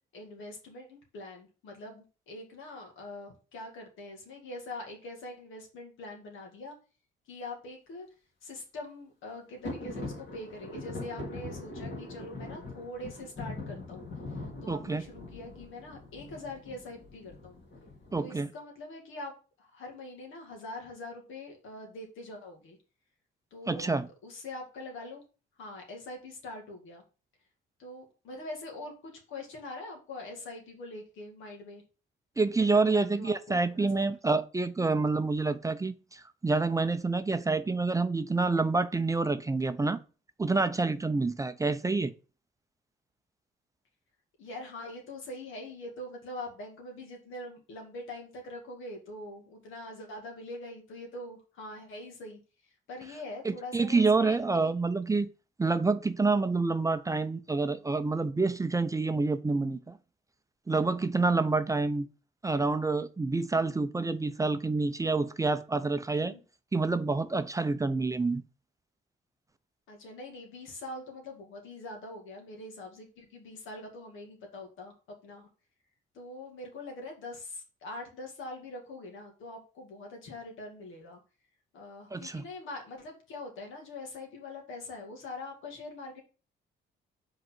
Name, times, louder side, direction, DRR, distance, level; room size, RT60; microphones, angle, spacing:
voice 1, 0.1-6.8 7.3-8.1 8.4-14.1 14.6-17.6 18.2-19.3 19.6-22.8 23.5-23.9 24.2-25.2 25.6-27.0 27.8-31.8 32.6-34.1 44.4-54.7 66.2-66.4 69.9-75.5 76.1-81.2 81.7-86.2, left 2 dB, 85° left, 2.1 m, -43 dB
sound 1, 9.6-18.2, left 2 dB, 60° left, 2.4 m, -42 dB
voice 2, 14.7-15.0 18.1-18.5 23.7-24.1 32.4-40.0 40.4-42.1 53.4-55.3 55.6-60.0 60.7-62.1 62.4-66.3 66.7-68.4 82.1-82.4, right 3 dB, 15° right, 0.5 m, -28 dB
5.2 x 3.9 x 5.8 m
cardioid pair, 90°, 20 cm